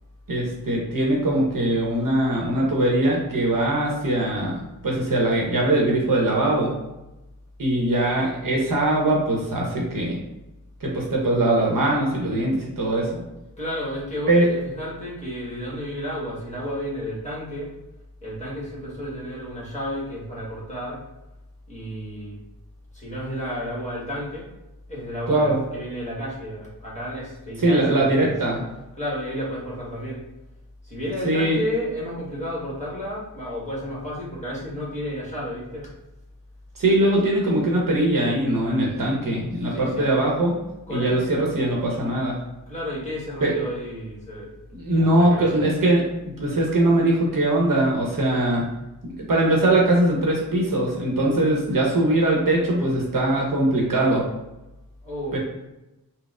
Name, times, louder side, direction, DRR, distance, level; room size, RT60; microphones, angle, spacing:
voice 1, 0.3-6.7 7.6-10.2 10.8-13.2 14.3-14.5 25.3-25.6 27.6-28.6 31.2-31.6 36.8-40.5 40.9-42.4 43.4-43.5 44.7-46.0 46.4-48.7 49.0-54.3 55.3-55.4, right 1 dB, 60° right, -2 dB, 0.9 m, -21 dB
voice 2, 13.6-17.7 18.2-21.0 21.7-22.4 22.9-24.5 24.9-28.3 28.9-30.2 30.8-35.9 39.7-40.1 40.9-41.4 42.7-44.5 44.8-45.6 55.0-55.4, equal, 20° left, -6 dB, 1.2 m, -32 dB
4.0 x 2.0 x 2.4 m, 0.97 s
wide cardioid pair, 90°, 37 cm